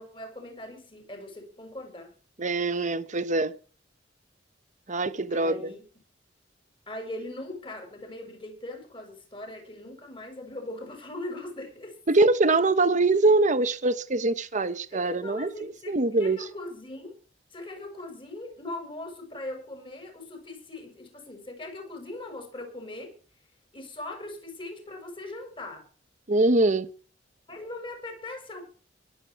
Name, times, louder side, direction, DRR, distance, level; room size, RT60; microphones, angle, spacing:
voice 1, 0.0-2.1 5.3-5.8 6.9-12.0 14.9-17.1 17.5-23.2 23.7-25.8 27.5-28.6, left 1 dB, 30° left, 6.9 m, -40 dB
voice 2, 2.4-3.5 4.9-5.7 12.1-15.5 15.9-16.5 26.3-26.9, right 2 dB, 40° right, 1.0 m, -23 dB
23.0 x 8.8 x 4.8 m
head